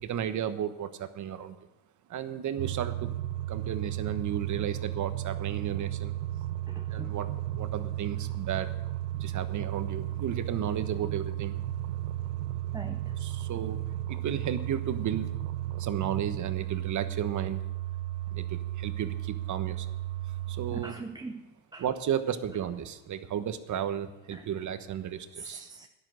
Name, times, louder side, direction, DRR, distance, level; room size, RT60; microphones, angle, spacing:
voice 1, 0.0-1.6 2.1-3.1 3.5-6.2 6.9-8.7 9.2-11.6 13.2-15.4 15.8-17.6 18.3-19.9 20.5-21.0 21.8-25.7, right 9 dB, 40° right, 10 dB, 1.2 m, -34 dB
sound 1, 2.6-20.9, right 13 dB, 80° right, 1.1 m, -34 dB
voice 2, 6.7-7.1 12.7-13.1 20.7-21.4 21.7-21.9 24.3-24.5 25.4-25.9, right 3 dB, 10° right, 5 dB, 0.6 m, -41 dB
13.0 x 10.5 x 6.3 m, 0.98 s
supercardioid pair, 100°, 44 cm